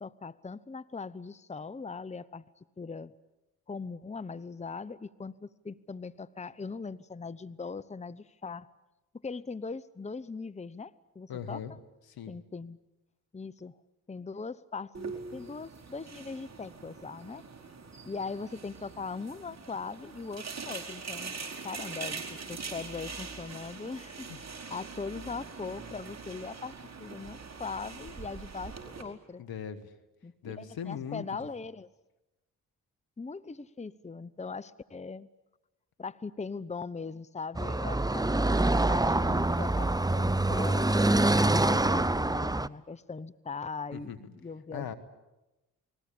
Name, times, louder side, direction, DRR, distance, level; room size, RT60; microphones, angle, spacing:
voice 1, 0.0-2.4 2.8-3.1 3.7-8.7 9.2-11.6 12.3-12.8 13.3-13.8 14.1-17.4 18.0-21.4 21.6-26.7 27.0-29.4 30.2-31.9 33.2-35.3 36.0-44.9, left 4 dB, 20° left, 16 dB, 0.9 m, -40 dB
voice 2, 11.3-11.7 12.1-12.4 24.3-24.4 29.4-29.9 30.4-31.3 43.9-44.2 44.7-44.9, left 8 dB, 70° left, 9 dB, 1.9 m, -39 dB
sound 1, 14.9-29.0, right 4 dB, 45° right, 4.8 m, -43 dB
Car passing by / Traffic noise roadway noise, 37.5-42.7, right 2 dB, 10° right, 0.9 m, -25 dB
29.0 x 20.5 x 8.7 m, 1.0 s
hypercardioid pair, 40°, 37 cm